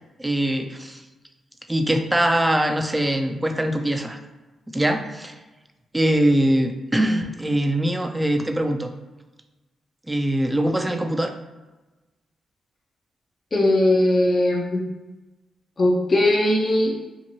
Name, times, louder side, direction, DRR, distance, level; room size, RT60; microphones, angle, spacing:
voice 1, 0.2-1.0 1.7-4.2 4.7-5.3 5.9-8.9 10.1-11.3, right 1 dB, 15° right, 6 dB, 0.4 m, -22 dB
voice 2, 13.5-14.8 15.8-16.9, left 1 dB, 40° left, -3 dB, 0.6 m, -19 dB
2.8 x 2.5 x 2.7 m, 1.1 s
supercardioid pair, 55°, 0 cm